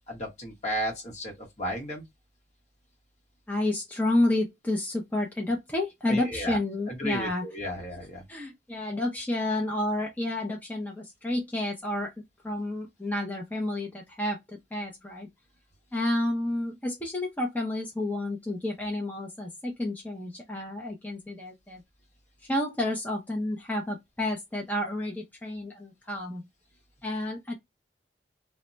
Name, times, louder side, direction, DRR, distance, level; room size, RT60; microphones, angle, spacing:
voice 1, 0.1-2.0 6.1-6.6 6.9-8.2, equal, 40° left, 1.0 m, -34 dB
voice 2, 3.5-7.4 8.3-12.1 12.4-15.3 15.9-21.8 22.5-26.4 27.0-27.5, left 1 dB, 10° left, 0.5 m, -30 dB
2.1 x 2.1 x 3.7 m
head